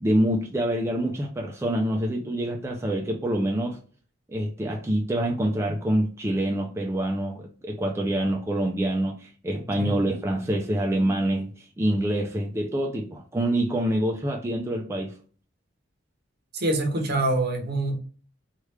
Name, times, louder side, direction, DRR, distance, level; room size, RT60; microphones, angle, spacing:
voice 1, 0.0-3.8 4.3-15.1, right 1 dB, 15° right, 0.4 m, -26 dB
voice 2, 16.5-18.0, right 2 dB, 55° right, 0.8 m, -25 dB
3.2 x 2.4 x 3.1 m
head